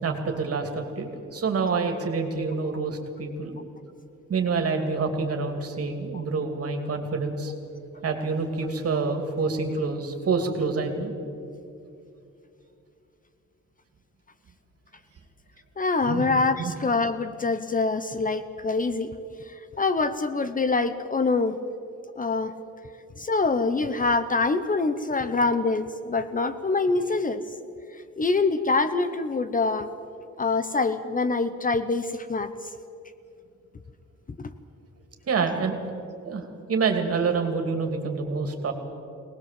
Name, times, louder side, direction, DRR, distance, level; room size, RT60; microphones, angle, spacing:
voice 1, 0.0-3.6 4.3-7.5 8.0-11.2 16.0-16.3 16.6-16.7 35.3-35.8 36.2-38.7, right 4 dB, 50° right, 4 dB, 2.7 m, -27 dB
voice 2, 15.8-19.1 19.5-21.6 22.2-22.5 23.2-27.4 28.2-29.9 30.4-32.5 34.4-34.5, left 3 dB, 30° left, 11 dB, 0.7 m, -25 dB
23.0 x 19.0 x 7.7 m, 2.7 s
wide cardioid pair, 160°, 30 cm